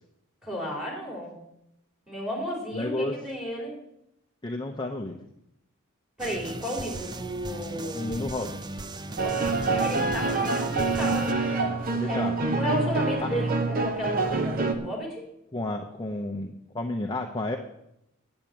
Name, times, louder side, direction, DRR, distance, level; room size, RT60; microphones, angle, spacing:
voice 1, 0.4-1.4 2.1-3.7 6.2-8.2 9.1-12.3 12.6-15.3, equal, ahead, -2 dB, 3.8 m, -34 dB
voice 2, 2.7-3.1 4.4-5.3 7.9-8.6 11.9-12.5 13.2-13.3 15.5-17.6, left 2 dB, 20° left, 3 dB, 0.7 m, -31 dB
sound 1, 6.2-11.3, right 2 dB, 20° right, 0.5 m, -38 dB
sound 2, 9.2-14.7, right 3 dB, 40° right, 1.0 m, -26 dB
8.8 x 7.9 x 8.7 m, 0.83 s
head